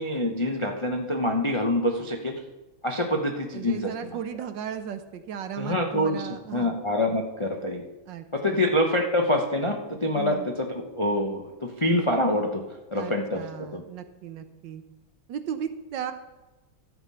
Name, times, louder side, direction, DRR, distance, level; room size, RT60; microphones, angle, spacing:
voice 1, 0.0-2.4 2.8-4.1 5.6-7.8 8.3-12.6 12.9-13.8, left 1 dB, 45° left, 2 dB, 0.3 m, -26 dB
voice 2, 3.5-6.8 8.1-8.6 10.1-10.5 12.9-14.8 15.3-16.1, right 8 dB, 65° right, 9 dB, 1.4 m, -36 dB
13.5 x 7.2 x 5.6 m, 1.1 s
omnidirectional pair, 2.3 m